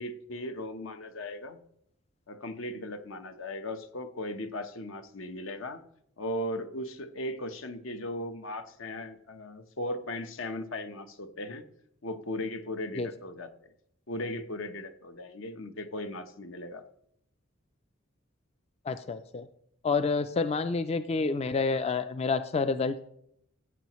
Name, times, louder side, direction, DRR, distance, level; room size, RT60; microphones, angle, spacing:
voice 1, 0.0-1.6 2.3-5.8 6.2-11.7 12.0-13.5 14.1-16.8, left 1 dB, 75° left, 8 dB, 1.0 m, -37 dB
voice 2, 18.9-19.5 19.8-23.0, left 4 dB, 30° left, 11 dB, 0.3 m, -28 dB
14.5 x 8.1 x 3.1 m, 0.72 s
head